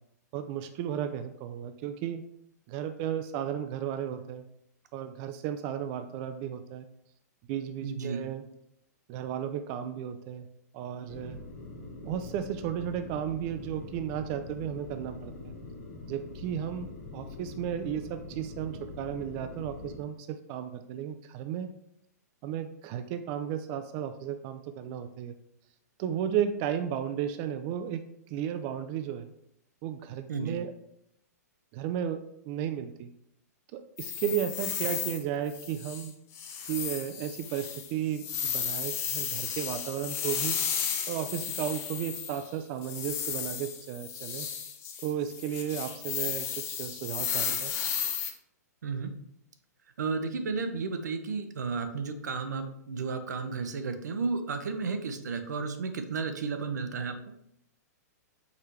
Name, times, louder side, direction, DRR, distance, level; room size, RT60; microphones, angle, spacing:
voice 1, 0.3-2.2 2.7-4.5 4.9-6.9 7.5-8.5 9.1-10.5 10.7-11.4 12.0-15.5 16.1-21.7 22.4-25.3 26.0-28.0 28.3-29.3 29.8-30.7 31.7-33.1 33.7-36.1 36.7-40.6 41.1-44.5 45.0-47.7, right 9 dB, 35° right, 8 dB, 0.3 m, -34 dB
voice 2, 7.8-8.2 30.3-30.6 48.8-49.1 50.0-57.1, right 4 dB, 80° right, 7 dB, 0.6 m, -33 dB
sound 1, 11.1-20.0, left 2 dB, 60° left, 1.3 m, -44 dB
sound 2, 34.0-35.2 35.5-36.1 36.3-42.5 42.8-48.3, left 8 dB, 30° left, 0.6 m, -34 dB
4.7 x 3.3 x 3.1 m, 0.75 s
hypercardioid pair, 130°, 9 cm